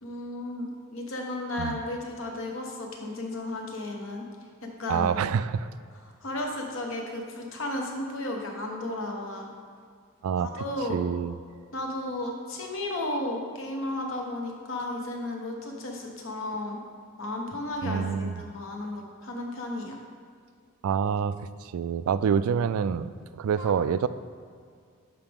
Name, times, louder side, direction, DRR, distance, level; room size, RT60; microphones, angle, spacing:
voice 1, 0.0-4.2 4.8-5.1 6.2-9.5 10.4-11.0 11.7-16.8 17.2-20.0 23.6-23.7, left 1 dB, 65° left, 1 dB, 1.2 m, -34 dB
voice 2, 4.9-5.7 10.2-10.6 10.9-11.3 17.8-18.4 20.8-24.1, right 7 dB, 80° right, 15 dB, 0.3 m, -27 dB
11.5 x 4.9 x 3.6 m, 2.2 s
head